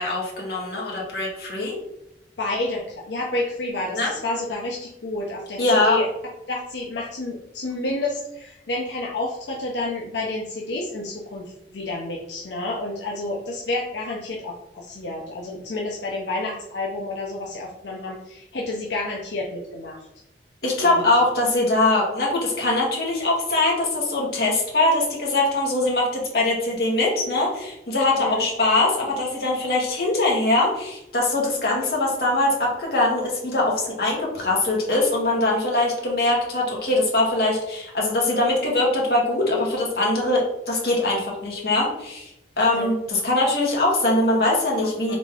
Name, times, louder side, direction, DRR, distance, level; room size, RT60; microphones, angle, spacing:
voice 1, 0.0-1.7 3.9-4.1 5.6-6.0 20.6-45.2, left 2 dB, 65° left, -3 dB, 1.5 m, -22 dB
voice 2, 2.4-6.1 6.5-11.5 11.7-20.0 20.8-21.1 28.2-28.5 42.7-42.9 45.1-45.2, left 2 dB, 90° left, -2 dB, 0.7 m, -29 dB
3.9 x 3.6 x 3.5 m, 0.86 s
head